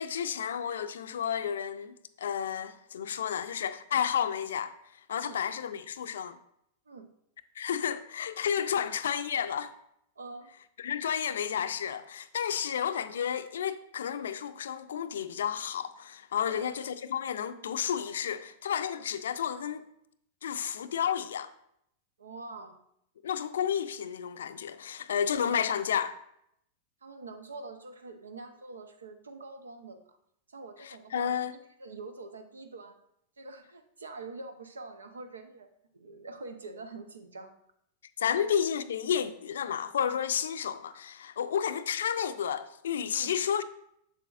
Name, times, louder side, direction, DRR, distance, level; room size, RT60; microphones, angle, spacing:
voice 1, 0.0-6.4 7.6-9.7 10.8-19.9 20.4-21.5 23.2-26.2 30.8-31.5 38.2-43.6, left 8 dB, 75° left, 0.4 m, -31 dB
voice 2, 10.2-10.5 16.5-16.8 18.9-19.1 22.2-22.8 27.0-30.0 30.5-31.4 31.8-33.0 33.4-35.7 35.9-37.5 38.4-38.5 43.1-43.3, right 3 dB, 90° right, 0.7 m, -45 dB
7.2 x 6.8 x 2.4 m
hypercardioid pair, 100°, 0 cm